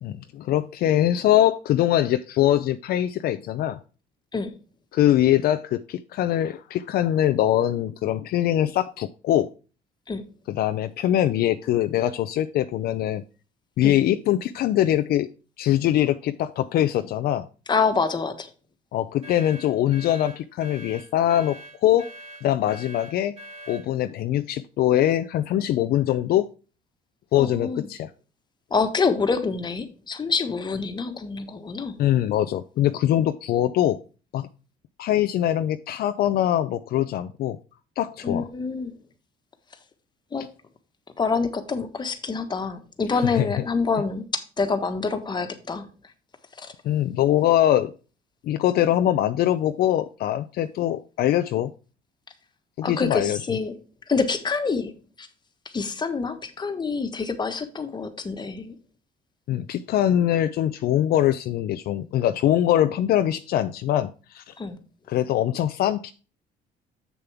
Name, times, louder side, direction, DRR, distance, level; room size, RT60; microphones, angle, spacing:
voice 1, 0.0-3.8 4.9-9.5 10.5-13.2 13.8-15.3 15.6-17.5 18.9-22.1 22.4-23.3 23.7-26.5 27.3-28.1 32.0-34.0 34.3-34.5 35.0-37.6 38.0-38.5 43.1-43.5 46.8-47.9 48.4-51.7 52.8-53.4 59.5-64.5 65.1-66.1, left 12 dB, 65° left, 10 dB, 0.5 m, -23 dB
voice 2, 17.7-18.5 27.4-27.9 28.7-32.0 38.2-38.9 40.3-40.5 41.2-45.9 46.6-46.7 52.8-53.7 54.1-54.9 55.2-55.3 55.6-58.7 64.6-64.8, left 4 dB, 25° left, 7 dB, 1.4 m, -26 dB
sound 1, 19.2-23.9, equal, 40° right, 2.7 m, -43 dB
7.4 x 6.9 x 3.5 m, 0.35 s
cardioid pair, 110°, 17 cm